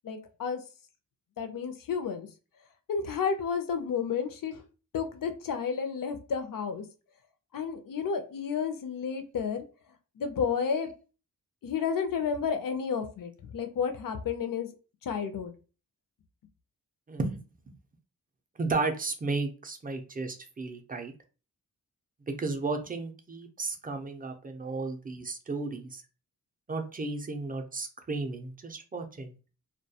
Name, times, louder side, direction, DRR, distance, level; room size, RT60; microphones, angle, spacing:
voice 1, 0.0-0.6 1.4-2.3 2.9-4.6 4.9-6.8 7.5-9.6 10.2-10.9 11.6-14.7 15.1-15.5, left 6 dB, 65° left, 7 dB, 0.5 m, -31 dB
voice 2, 17.1-17.4 18.6-21.1 22.3-26.0 26.7-29.3, right 3 dB, 25° right, 6 dB, 0.4 m, -33 dB
2.2 x 2.2 x 2.7 m, 0.35 s
wide cardioid pair, 120°, 36 cm